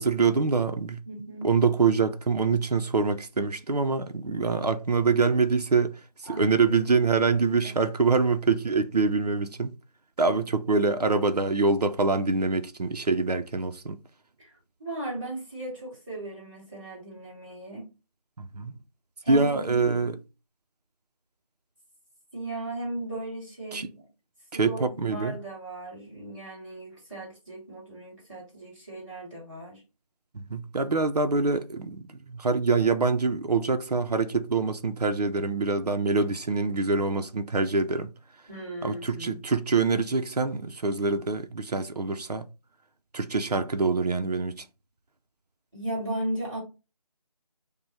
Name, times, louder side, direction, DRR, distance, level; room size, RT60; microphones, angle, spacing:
voice 1, 0.0-1.0 1.4-9.7 10.2-14.0 18.4-18.7 19.3-20.2 23.7-23.9 24.5-25.4 30.3-38.1 38.8-42.5 43.1-44.6, right 4 dB, 85° right, 0.7 m, -25 dB
voice 2, 1.1-1.5 6.3-6.8 7.2-7.8 14.4-17.9 19.2-20.2 22.3-24.0 24.5-29.8 38.5-39.4 45.7-46.6, right 1 dB, 5° left, 2.4 m, -37 dB
5.1 x 2.3 x 3.4 m
figure-of-eight pair, 170°, 20 cm